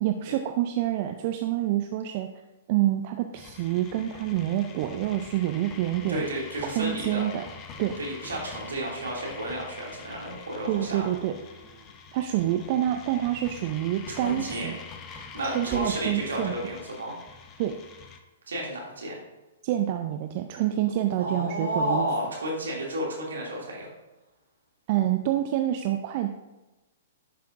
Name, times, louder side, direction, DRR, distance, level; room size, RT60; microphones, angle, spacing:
voice 1, 0.0-2.3 2.7-6.2 6.8-7.4 7.8-8.0 10.6-11.3 12.1-14.8 15.4-16.5 17.6-17.8 19.6-22.1 24.9-26.3, right 12 dB, 45° right, 6 dB, 0.5 m, -27 dB
sound 1, 3.3-18.2, left 5 dB, 25° left, 0.8 m, -45 dB
voice 2, 6.1-7.2 8.0-11.1 14.1-14.7 15.1-17.2 18.5-19.2 21.2-23.9, right 1 dB, 70° right, -3 dB, 2.5 m, -32 dB
Dog, 11.1-12.6 14.2-16.0, right 2 dB, 5° right, 1.6 m, -45 dB
10.5 x 5.7 x 2.6 m, 1.1 s
figure-of-eight pair, 115°, 0 cm